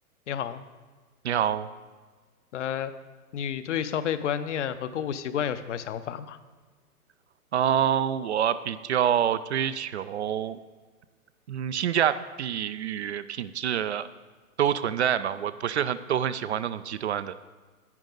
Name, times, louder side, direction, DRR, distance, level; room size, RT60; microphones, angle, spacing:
voice 1, 0.3-0.6 2.5-2.9 3.3-6.4, left 9 dB, 55° left, 12 dB, 0.7 m, -30 dB
voice 2, 1.2-1.7 7.5-10.6 11.5-14.1 14.6-17.4, right 9 dB, 50° right, 14 dB, 0.4 m, -27 dB
10.5 x 8.7 x 3.9 m, 1.4 s
hypercardioid pair, 125°, 44 cm